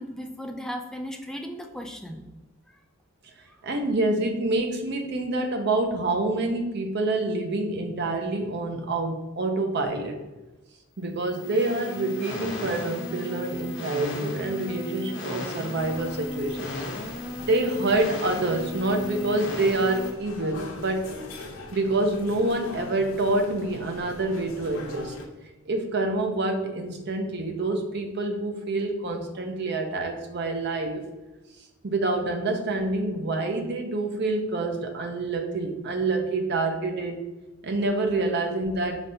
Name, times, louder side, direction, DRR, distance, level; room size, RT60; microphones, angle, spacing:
voice 1, 0.0-2.2 2.7-2.8, equal, 5° left, 3 dB, 0.3 m, -36 dB
voice 2, 3.6-10.2 11.0-16.8 17.5-21.1 21.7-25.1 25.7-31.0 31.8-37.2 37.6-39.1, right 2 dB, 55° right, 4 dB, 0.7 m, -27 dB
sound 1, 11.2-20.1, left 1 dB, 65° left, 1.0 m, -35 dB
sound 2, 15.7-25.2, left 2 dB, 85° left, 0.8 m, -42 dB
5.2 x 3.2 x 2.7 m, 1.1 s
head